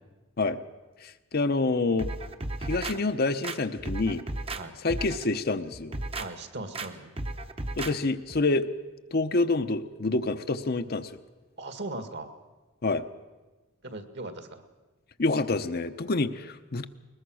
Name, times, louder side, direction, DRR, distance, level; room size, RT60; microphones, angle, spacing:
voice 1, 1.0-2.1 2.6-4.2 4.8-6.0 7.8-8.7 9.1-11.1 12.8-13.0 15.2-16.9, left 3 dB, 45° left, 9 dB, 0.8 m, -27 dB
sound 1, 2.0-3.0 3.4-4.6 4.9-5.2 5.7-6.3 6.7-6.9 7.2-7.9 8.3-8.4, right 2 dB, 25° right, 0.9 m, -34 dB
voice 2, 6.1-7.1 11.6-12.3 13.8-14.6, right 2 dB, 55° right, 9 dB, 1.8 m, -38 dB
21.0 x 20.5 x 6.3 m, 1.2 s
head